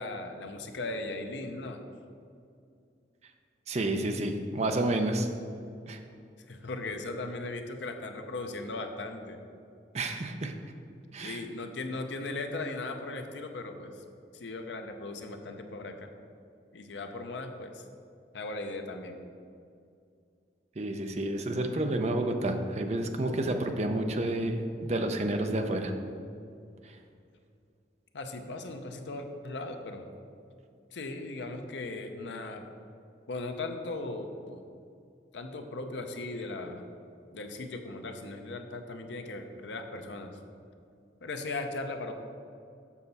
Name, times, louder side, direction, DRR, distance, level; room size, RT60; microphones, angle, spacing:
voice 1, 0.0-1.8 6.5-9.4 11.2-14.0 14.3-16.1 16.7-17.8 18.3-19.2 28.1-30.1 30.9-32.6 33.3-34.6 35.3-36.9 37.3-40.3 41.2-42.1, left 2 dB, 75° left, 5 dB, 0.6 m, -38 dB
voice 2, 3.7-5.3 5.9-6.0 9.9-10.5 11.1-11.4 20.8-25.9, right 1 dB, 35° right, 5 dB, 0.5 m, -30 dB
7.2 x 5.6 x 4.1 m, 2.4 s
head